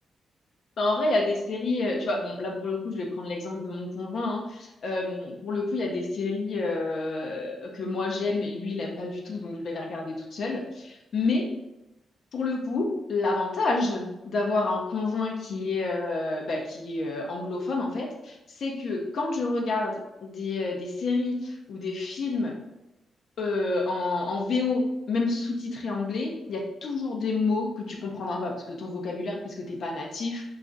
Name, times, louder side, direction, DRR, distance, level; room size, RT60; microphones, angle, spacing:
voice 1, 0.8-11.5 12.3-22.6 23.4-30.4, left 3 dB, 65° left, 0 dB, 0.5 m, -29 dB
2.4 x 2.3 x 3.8 m, 0.93 s
cardioid pair, 65°, 0 cm